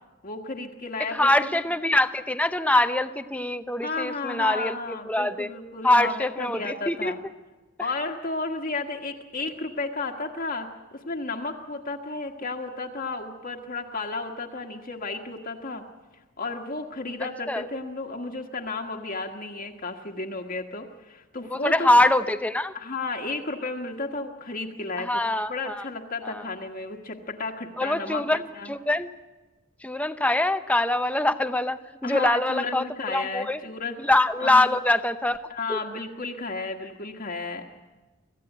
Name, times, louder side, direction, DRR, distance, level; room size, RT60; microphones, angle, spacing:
voice 1, 0.2-1.5 3.8-7.2 7.8-15.8 16.4-21.9 22.7-25.2 25.5-28.7 32.0-34.0 34.4-34.6 35.5-37.6, left 3 dB, 40° left, 1 dB, 1.5 m, -33 dB
voice 2, 1.1-5.5 5.8-7.1 17.5-17.6 21.5-22.7 25.0-25.7 26.2-26.4 27.8-29.1 29.8-33.6 34.0-35.4 35.7-35.8, left 1 dB, 5° left, 10 dB, 0.8 m, -24 dB
25.5 x 15.5 x 9.3 m, 1.2 s
head